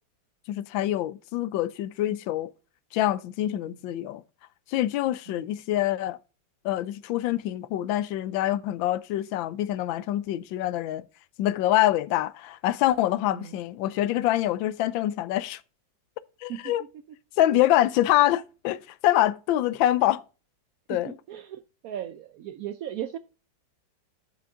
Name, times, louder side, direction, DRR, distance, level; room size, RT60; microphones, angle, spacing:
voice 1, 0.5-2.5 2.9-4.2 4.7-6.2 6.6-11.0 11.4-15.6 16.4-16.8 17.4-20.2 20.9-21.2, left 14 dB, 85° left, 1.3 m, -25 dB
voice 2, 21.3-23.2, right 10 dB, 85° right, 0.7 m, -37 dB
10.0 x 5.0 x 3.7 m
omnidirectional pair, 2.1 m